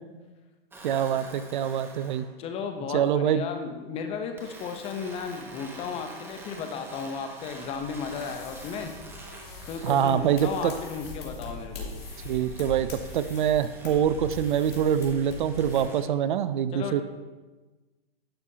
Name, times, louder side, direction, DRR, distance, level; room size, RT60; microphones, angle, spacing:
sound 1, 0.7-2.3 4.4-11.1 12.0-16.0, right 2 dB, 5° right, 1.0 m, -47 dB
voice 1, 0.8-2.3 2.9-3.5 9.8-10.7 12.2-17.0, right 9 dB, 55° right, 13 dB, 0.5 m, -25 dB
voice 2, 2.4-8.9 9.7-12.0 16.7-17.0, left 5 dB, 20° left, 6 dB, 0.7 m, -34 dB
sound 2, 7.7-15.8, left 3 dB, 75° left, 2.8 m, -42 dB
11.0 x 7.0 x 2.7 m, 1.2 s
hypercardioid pair, 135°, 30 cm